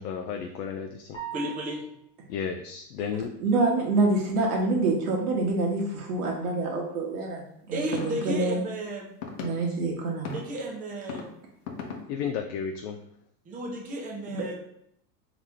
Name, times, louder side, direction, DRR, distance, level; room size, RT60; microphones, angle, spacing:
voice 1, 0.0-1.2 2.3-3.3 12.1-13.0, left 7 dB, 80° left, 5 dB, 0.6 m, -33 dB
sound 1, 1.1-2.2, right 9 dB, 10° left, 0.8 m, -40 dB
voice 2, 1.3-1.8 7.7-9.1 10.3-11.3 13.4-14.5, right 1 dB, 15° right, -1 dB, 0.6 m, -33 dB
voice 3, 3.4-7.4 7.7-8.6 9.4-10.3 14.3-14.5, right 3 dB, 65° right, -1 dB, 1.1 m, -26 dB
sound 2, 7.9-8.1 9.2-9.5 10.2-10.4 11.0-11.2 11.7-12.0, left 6 dB, 60° left, 0.9 m, -35 dB
3.9 x 3.0 x 3.4 m, 0.73 s
supercardioid pair, 140°, 48 cm